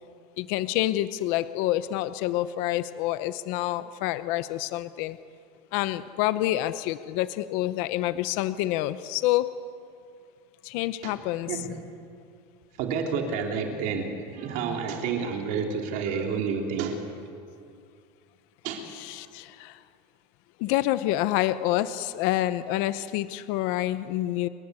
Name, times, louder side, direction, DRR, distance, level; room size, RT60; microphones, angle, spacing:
voice 1, 0.4-5.2 5.7-9.5 10.6-11.7 18.7-19.8 20.6-24.5, left 15 dB, 40° left, 13 dB, 0.7 m, -27 dB
voice 2, 12.8-17.0 18.6-18.9, right 5 dB, 40° right, 3 dB, 3.5 m, -29 dB
29.5 x 23.0 x 8.2 m, 2.4 s
supercardioid pair, 175°, 21 cm